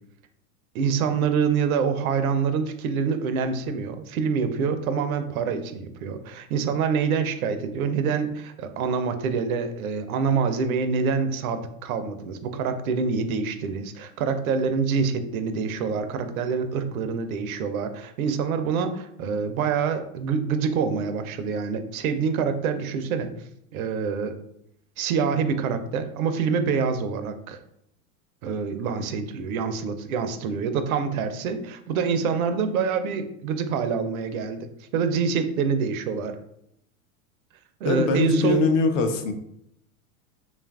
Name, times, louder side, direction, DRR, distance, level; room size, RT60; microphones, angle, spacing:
voice 1, 0.7-23.3 23.7-24.4 25.0-27.6 28.4-34.7 34.9-36.4 37.8-38.6, right 5 dB, 75° right, 9 dB, 0.5 m, -26 dB
voice 2, 37.9-39.3, left 4 dB, 60° left, 6 dB, 0.6 m, -22 dB
2.9 x 2.4 x 2.3 m, 0.74 s
hypercardioid pair, 105°, 43 cm